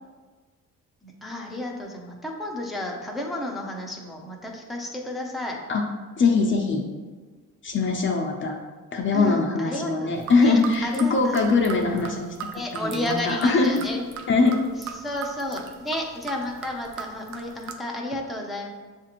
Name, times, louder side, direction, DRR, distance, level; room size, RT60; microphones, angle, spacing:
voice 1, 1.0-5.6 9.1-11.4 12.5-14.0 14.8-18.7, left 1 dB, ahead, -2 dB, 0.6 m, -32 dB
voice 2, 6.2-6.8 7.6-8.6 8.9-12.3 12.7-13.8 14.3-14.6, left 4 dB, 40° left, 1 dB, 0.6 m, -22 dB
sound 1, 10.1-17.7, right 6 dB, 70° right, 0.5 m, -39 dB
6.9 x 2.5 x 2.9 m, 1.4 s
cardioid pair, 90°, 30 cm